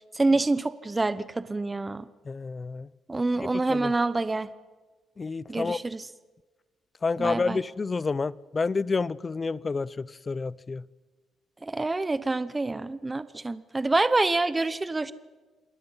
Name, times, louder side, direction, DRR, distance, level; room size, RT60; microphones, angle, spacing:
voice 1, 0.1-2.0 3.1-4.5 5.5-6.1 7.2-7.6 11.6-15.1, right 2 dB, 20° right, 0.8 m, -26 dB
voice 2, 2.3-2.9 3.4-3.9 5.2-5.8 7.0-10.8, left 4 dB, 30° left, 0.6 m, -29 dB
27.5 x 20.5 x 5.7 m
cardioid pair, 90°, 0 cm